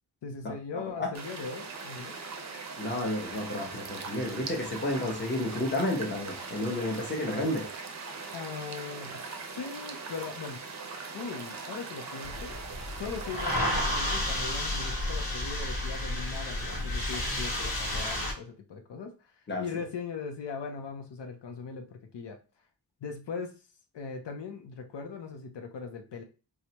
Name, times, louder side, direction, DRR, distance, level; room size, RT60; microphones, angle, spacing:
voice 1, 0.2-2.2 8.3-10.6 11.1-12.6 13.0-22.4 23.0-23.5 23.9-26.2, left 5 dB, 75° left, 4 dB, 0.7 m, -40 dB
sound 1, 1.1-13.6, right 4 dB, 40° right, 0.5 m, -41 dB
voice 2, 2.8-7.7 19.5-19.6, left 1 dB, 25° left, 0 dB, 0.9 m, -31 dB
sound 2, 12.2-18.3, left 1 dB, 55° left, 1.3 m, -31 dB
4.7 x 2.1 x 2.8 m, 0.33 s
wide cardioid pair, 160°, 43 cm